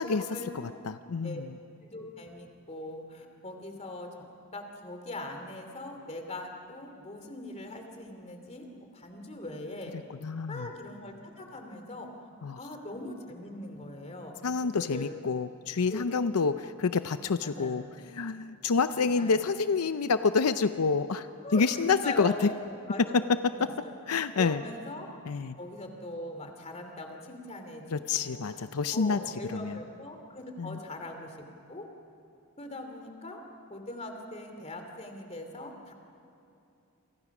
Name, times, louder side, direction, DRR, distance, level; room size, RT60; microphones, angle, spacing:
voice 1, 0.0-0.8 1.2-1.4 1.8-4.2 4.5-9.9 10.5-12.1 12.6-14.4 14.6-15.2 15.9-16.1 17.4-17.9 18.9-19.4 21.4-23.2 23.5-23.9 24.4-25.1 25.6-28.4 28.9-31.9 32.6-33.4 33.7-35.9, left 1 dB, 30° left, 4 dB, 2.8 m, -41 dB
voice 2, 0.5-1.6 10.2-10.7 12.4-12.6 14.4-17.8 18.1-22.5 23.1-23.4 24.1-24.6 25.3-25.6 27.9-29.2 29.5-29.8 30.6-30.8, left 5 dB, 80° left, 11 dB, 0.6 m, -28 dB
29.0 x 25.0 x 6.1 m, 2.6 s
head